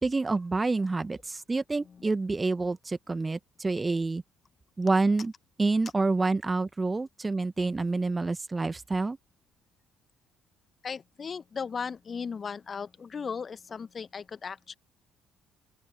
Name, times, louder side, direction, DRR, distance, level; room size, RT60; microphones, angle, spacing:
voice 1, 0.0-4.2 4.8-5.3 5.6-9.2, right 3 dB, 20° right, 1.8 m, -28 dB
voice 2, 1.8-2.1 4.9-5.3 10.8-14.8, left 6 dB, 35° left, 1.8 m, -37 dB
open air
figure-of-eight pair, 50°, 0 cm